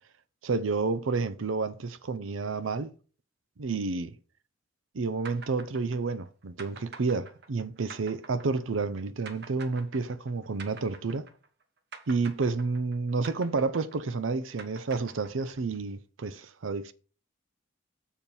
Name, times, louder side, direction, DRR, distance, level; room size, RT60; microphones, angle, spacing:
voice 1, 0.4-2.9 3.6-4.2 4.9-11.3 12.1-16.9, right 4 dB, 85° right, 0.6 m, -30 dB
sound 1, 5.2-11.6 11.9-15.8, right 5 dB, 55° right, 1.0 m, -47 dB
7.0 x 4.5 x 5.4 m
head